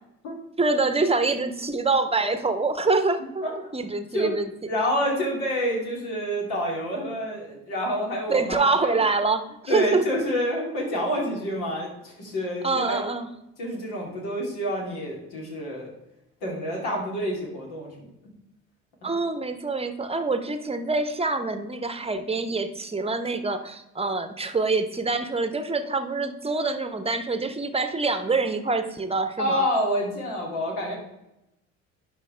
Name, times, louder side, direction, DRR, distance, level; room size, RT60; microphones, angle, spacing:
voice 1, 0.6-3.4 3.7-4.5 8.3-10.0 12.6-13.3 19.0-29.7, right 3 dB, 15° right, 9 dB, 1.0 m, -25 dB
voice 2, 4.7-9.0 9.7-13.0 13.6-15.9 16.4-18.1 29.4-30.9, equal, 70° left, -2 dB, 2.9 m, -28 dB
11.0 x 5.0 x 3.4 m, 0.87 s
hypercardioid pair, 50°, 40 cm